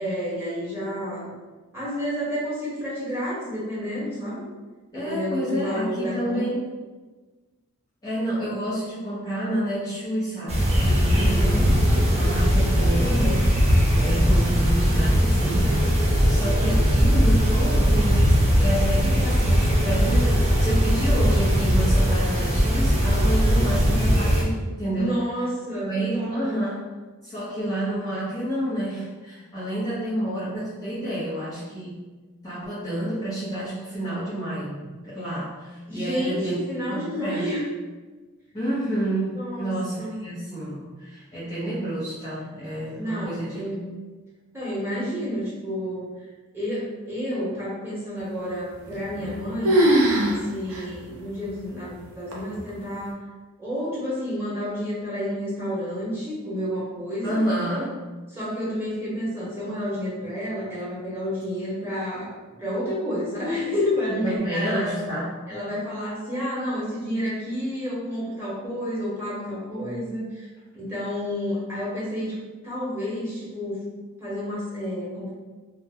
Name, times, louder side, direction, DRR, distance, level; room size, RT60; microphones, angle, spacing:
voice 1, 0.0-1.3 1.7-4.4 4.9-6.4 11.1-11.7 24.9-26.6 35.9-37.6 39.4-40.2 42.9-43.8 44.5-46.1 46.5-49.8 50.2-53.2 53.6-57.4 58.3-62.3 62.6-65.0 65.5-70.4 70.7-72.4 72.6-73.8 74.2-75.3, equal, 10° right, -8 dB, 0.9 m, -30 dB
voice 2, 4.9-6.7 8.0-25.2 25.8-26.8 27.2-32.1 32.4-36.6 36.9-37.5 38.5-43.6 57.2-57.9 64.1-65.3, right 1 dB, 15° left, -10 dB, 0.6 m, -29 dB
sound 1, 10.5-24.4, equal, 30° right, 0.4 m, -20 dB
sound 2, 48.9-49.4 49.6-50.4 50.7-50.8 51.5-51.6 52.3-52.7, right 1 dB, 85° right, 0.6 m, -20 dB
2.4 x 2.0 x 3.4 m, 1.3 s
head